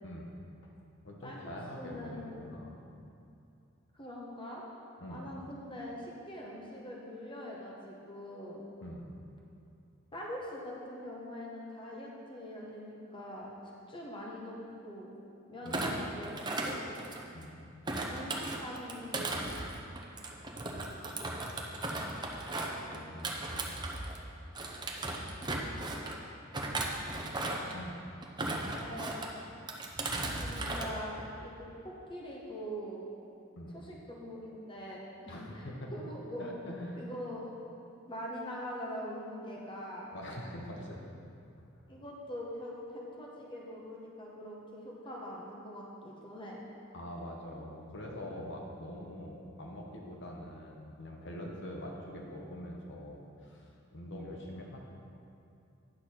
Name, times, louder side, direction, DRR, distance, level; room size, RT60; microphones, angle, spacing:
voice 1, 0.0-0.4 1.0-2.7 5.0-5.3 8.8-9.1 15.6-15.8 17.3-17.7 22.5-23.8 27.6-28.0 33.6-33.7 35.3-35.9 36.4-37.1 40.1-41.0 46.9-54.8, equal, 60° left, -1 dB, 1.1 m, -44 dB
voice 2, 1.7-2.3 3.9-4.6 5.1-8.6 10.1-13.5 13.9-15.1 15.5-16.9 18.1-19.3 28.8-29.2 30.4-31.1 31.4-33.1 33.7-36.5 37.0-37.5 38.1-40.1 41.9-46.6, equal, 25° left, -3 dB, 1.1 m, -43 dB
Thump thud, 15.7-17.4 17.9-24.2 24.5-26.2 26.5-27.8 28.2-29.3 29.7-30.9 31.2-31.5, right 2 dB, 20° right, 0.7 m, -36 dB
10.0 x 6.6 x 4.3 m, 2.6 s
head